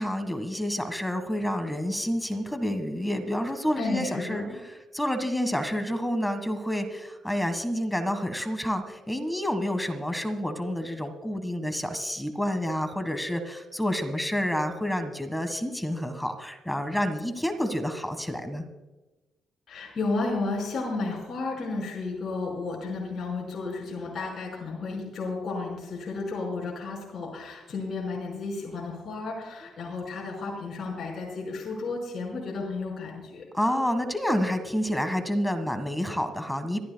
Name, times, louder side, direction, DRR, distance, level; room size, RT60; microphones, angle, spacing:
voice 1, 0.0-18.6 33.5-36.8, equal, 5° left, 8 dB, 1.6 m, -29 dB
voice 2, 3.8-4.6 19.7-33.4, left 3 dB, 50° left, -2 dB, 5.3 m, -33 dB
25.5 x 13.5 x 2.3 m, 1.1 s
cardioid pair, 90°, 0 cm